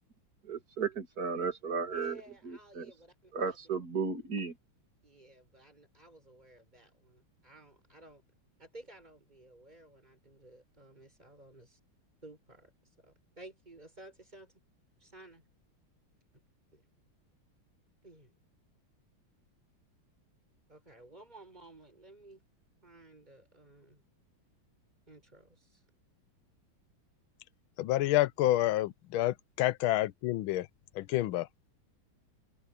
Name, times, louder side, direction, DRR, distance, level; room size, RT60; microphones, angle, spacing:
voice 1, 0.4-2.2 2.5-2.9 3.3-4.6, right 5 dB, 45° right, 3.0 m, -34 dB
voice 2, 1.9-3.6 5.0-8.2 8.6-11.8 12.2-14.5 15.0-15.4 16.7-16.8 18.0-18.3 20.7-22.4 22.8-24.0 25.1-25.8, right 2 dB, 20° right, 6.4 m, -54 dB
voice 3, 27.8-30.7 30.9-31.5, left 15 dB, 80° left, 1.4 m, -28 dB
open air
omnidirectional pair, 2.3 m